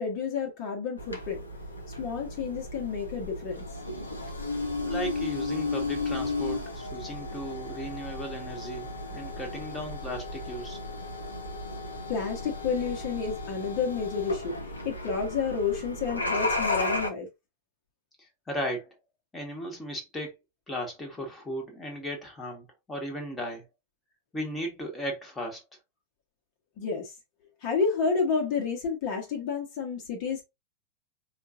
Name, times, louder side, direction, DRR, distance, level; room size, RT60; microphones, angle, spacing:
voice 1, 0.0-1.4 2.0-3.6 12.1-14.5 14.8-17.3 26.8-27.1 27.6-30.4, left 5 dB, 45° left, 1.2 m, -30 dB
sound 1, 1.0-17.1, left 2 dB, 75° left, 0.8 m, -34 dB
voice 2, 4.8-10.8 18.2-18.9 19.3-20.3 20.7-23.6 24.3-25.6, equal, 10° left, 1.4 m, -36 dB
5.0 x 2.6 x 2.5 m
figure-of-eight pair, 90°, 0 cm